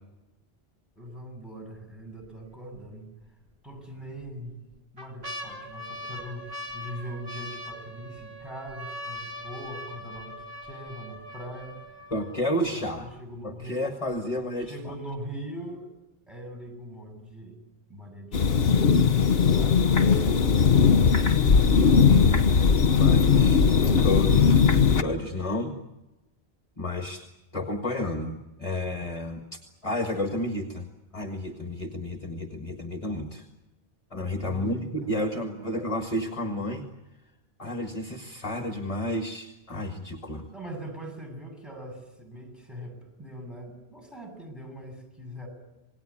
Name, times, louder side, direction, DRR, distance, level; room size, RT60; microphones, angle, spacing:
voice 1, 1.0-3.1 3.6-4.6 4.9-11.8 12.6-13.8 14.6-15.9 16.3-17.6 17.9-18.9 19.6-20.9 21.4-22.1 34.4-35.7 40.5-45.5, equal, ahead, 3 dB, 8.0 m, -41 dB
sound 1, 1.8-2.3 2.7-2.8 3.7-4.3 4.7-12.7 13.4-13.5 13.7-14.1 14.6-14.7, left 1 dB, 70° right, 4.0 m, -41 dB
voice 2, 12.1-13.1 13.4-14.9 22.1-22.5 22.9-25.8 26.8-27.2 27.5-30.9 31.1-33.5 34.1-36.9 37.6-40.5, left 1 dB, 35° left, 4 dB, 1.8 m, -31 dB
sound 2, 18.3-25.0, left 6 dB, 70° left, 1.4 m, -19 dB
27.5 x 19.5 x 8.7 m, 1.0 s
omnidirectional pair, 1.1 m